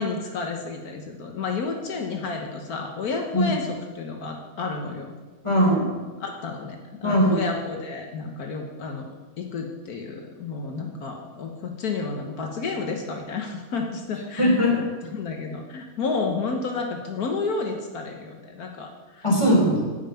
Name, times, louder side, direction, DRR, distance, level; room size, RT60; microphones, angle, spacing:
voice 1, 0.0-5.1 6.2-19.3, left 4 dB, 75° left, 2 dB, 1.5 m, -31 dB
voice 2, 5.4-5.9 7.0-7.4 14.4-14.7 19.2-19.8, equal, 20° left, -2 dB, 3.3 m, -19 dB
12.0 x 5.6 x 8.9 m, 1.3 s
omnidirectional pair, 1.6 m